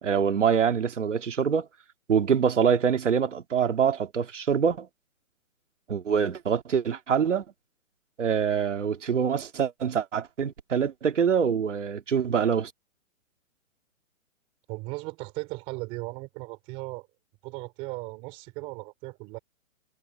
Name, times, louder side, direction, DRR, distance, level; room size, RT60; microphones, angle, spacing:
voice 1, 0.0-1.7 2.1-4.9 5.9-7.4 8.2-12.7, right 7 dB, 60° right, 2.6 m, -25 dB
voice 2, 14.7-17.1 17.4-19.4, right 23 dB, 15° right, 3.9 m, -37 dB
hypercardioid pair, 180°, 41 cm